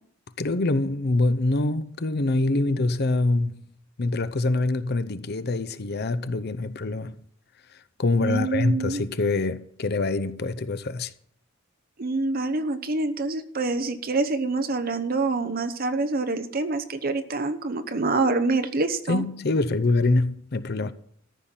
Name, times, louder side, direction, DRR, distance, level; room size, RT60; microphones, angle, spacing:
voice 1, 0.4-3.6 4.0-7.2 8.0-11.1 19.1-20.9, left 2 dB, 50° left, 0.7 m, -25 dB
voice 2, 8.2-9.0 12.0-19.2, right 3 dB, 45° right, 0.9 m, -26 dB
14.0 x 5.8 x 8.8 m
head